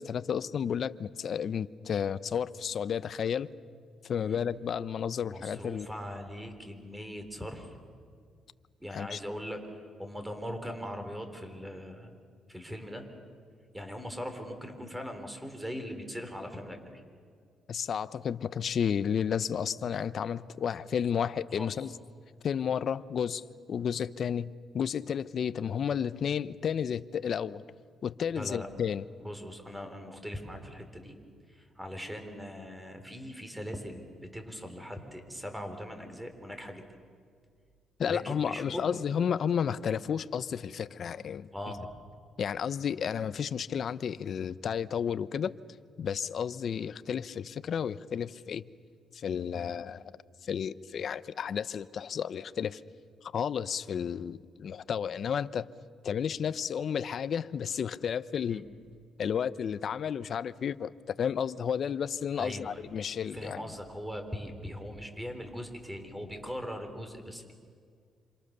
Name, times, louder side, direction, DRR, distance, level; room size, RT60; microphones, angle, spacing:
voice 1, 0.0-3.5 4.0-5.9 8.9-9.2 17.7-21.9 22.4-27.6 28.0-29.0 38.0-41.5 42.4-45.5 46.0-48.6 49.1-50.0 50.4-52.8 53.2-55.7 56.0-58.7 59.2-63.6, left 7 dB, 55° left, 16 dB, 0.7 m, -32 dB
voice 2, 5.2-7.8 8.8-12.1 12.5-13.1 13.7-17.0 21.6-21.8 28.3-28.7 29.2-31.2 31.5-34.0 34.3-36.9 38.1-39.0 41.5-41.9 49.5-49.7 58.5-58.6 62.4-62.8 63.3-67.5, equal, 5° right, 6 dB, 4.2 m, -40 dB
27.5 x 27.0 x 6.8 m, 2.1 s
cardioid pair, 90°, 0 cm